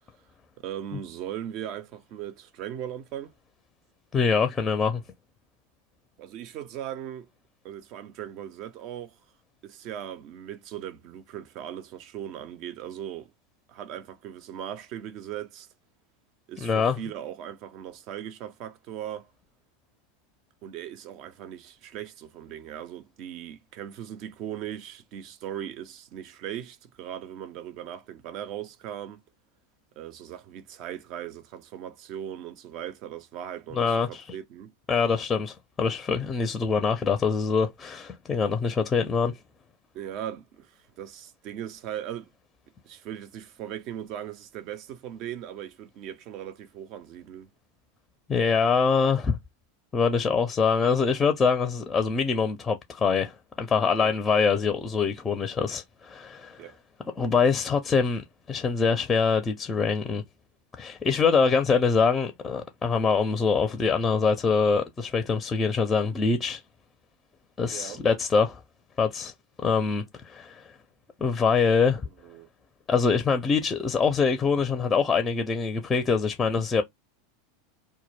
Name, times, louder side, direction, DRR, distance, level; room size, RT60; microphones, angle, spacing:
voice 1, 0.6-3.3 6.2-7.3 7.6-9.2 9.6-13.3 13.7-15.7 16.5-19.3 20.6-29.2 30.0-34.7 39.9-42.3 42.8-47.5 54.0-54.2 56.6-56.8 67.7-68.0 72.2-72.5, right 10 dB, 50° right, 0.5 m, -38 dB
voice 2, 4.1-5.0 16.6-17.0 33.7-34.2 34.9-39.3 48.3-49.4 49.9-56.6 57.2-60.2 60.8-66.6 67.6-68.6 69.0-69.3 69.6-70.6 71.2-72.0 72.9-76.8, left 5 dB, 20° left, 0.4 m, -24 dB
2.2 x 2.0 x 3.1 m
hypercardioid pair, 90°, 0 cm